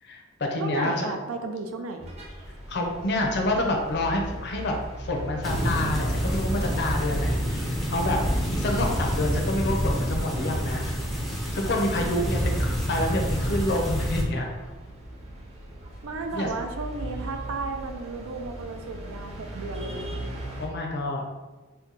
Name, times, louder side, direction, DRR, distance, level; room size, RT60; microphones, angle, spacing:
voice 1, 0.0-1.1 2.7-7.6 7.9-8.2 8.5-10.9 11.5-14.5 16.3-16.5 20.6-21.2, left 1 dB, 55° left, 1 dB, 0.6 m, -28 dB
voice 2, 0.6-2.1 12.0-12.4 16.0-20.1, right 3 dB, 85° right, 5 dB, 0.4 m, -34 dB
sound 1, 2.0-20.7, right 1 dB, 30° right, 0.7 m, -39 dB
sound 2, 5.4-14.2, equal, ahead, 0.4 m, -27 dB
2.8 x 2.2 x 3.9 m, 1.2 s
head